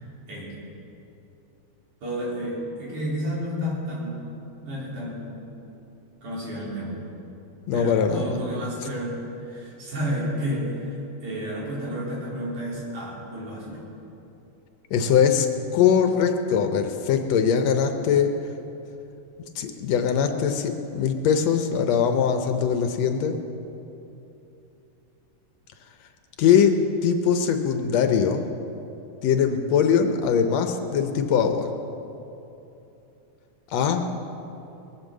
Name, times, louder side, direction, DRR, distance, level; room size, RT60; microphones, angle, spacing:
voice 1, 2.0-4.2 4.6-5.3 6.2-6.9 7.7-13.8, equal, 90° right, -6 dB, 5.2 m, -31 dB
voice 2, 7.7-8.4 14.9-15.5 15.7-18.3 19.6-23.4 26.4-28.4 29.2-31.7 33.7-34.1, left 7 dB, 70° left, 6 dB, 1.8 m, -21 dB
20.0 x 8.1 x 7.4 m, 2.9 s
omnidirectional pair, 3.4 m